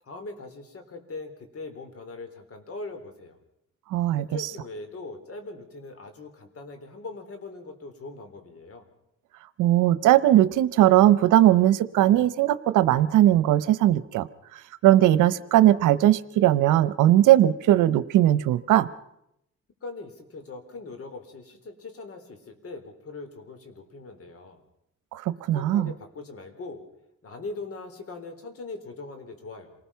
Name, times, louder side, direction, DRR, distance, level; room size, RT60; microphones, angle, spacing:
voice 1, 0.0-3.4 4.2-8.9 19.8-24.6 25.5-26.8 27.2-29.7, left 3 dB, 50° left, 8 dB, 4.0 m, -41 dB
voice 2, 3.9-4.3 9.6-14.3 14.8-18.9 25.1-25.2 25.5-25.9, right 13 dB, 85° right, 16 dB, 0.9 m, -19 dB
27.5 x 19.5 x 5.8 m, 0.80 s
cardioid pair, 90°, 30 cm